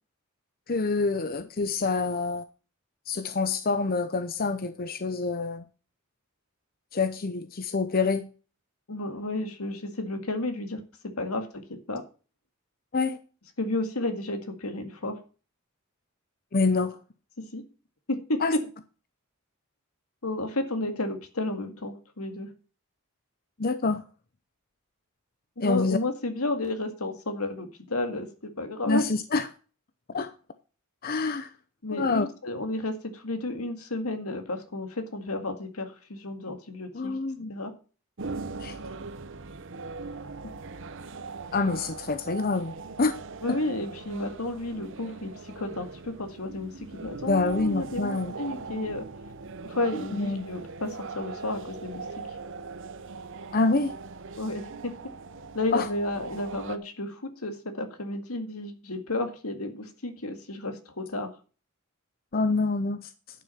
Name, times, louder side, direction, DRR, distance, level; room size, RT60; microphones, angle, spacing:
voice 1, 0.7-2.4 3.1-5.6 6.9-8.3 12.9-13.2 16.5-17.0 18.4-18.5 23.6-24.0 25.6-26.0 28.8-29.5 30.1-30.3 31.0-31.5 31.9-32.2 36.9-37.5 38.6-38.8 41.5-43.1 47.3-48.3 50.1-50.5 53.5-53.9 55.7-55.9 62.3-63.1, left 3 dB, 45° left, 0.7 m, -26 dB
voice 2, 8.9-10.8 11.2-12.0 13.6-15.2 17.5-17.6 18.1-18.4 20.2-22.5 25.6-29.0 31.8-37.1 37.5-37.7 43.4-49.0 49.6-52.4 54.4-54.9 55.5-61.3, left 2 dB, 85° left, 2.0 m, -32 dB
sound 1, 38.2-56.8, right 4 dB, 60° right, 0.9 m, -40 dB
10.5 x 6.2 x 5.7 m
head